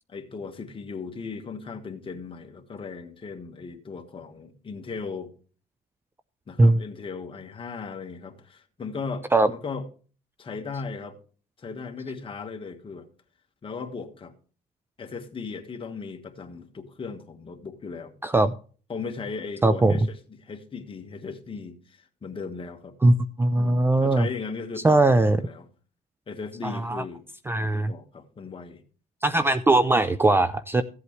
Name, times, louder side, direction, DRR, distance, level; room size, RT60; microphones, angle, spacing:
voice 1, 0.1-5.3 6.5-9.9 10.4-11.2 11.6-13.1 13.6-14.3 15.0-18.1 18.9-22.9 23.5-25.7 26.3-27.2 27.5-28.8, left 4 dB, 30° left, 1.6 m, -37 dB
voice 2, 18.2-18.5 19.6-20.0 23.0-24.3 24.8-25.4 26.6-27.0 27.5-27.9 29.2-30.8, right 2 dB, 15° right, 0.5 m, -20 dB
15.5 x 8.1 x 3.2 m
cardioid pair, 110°, 17 cm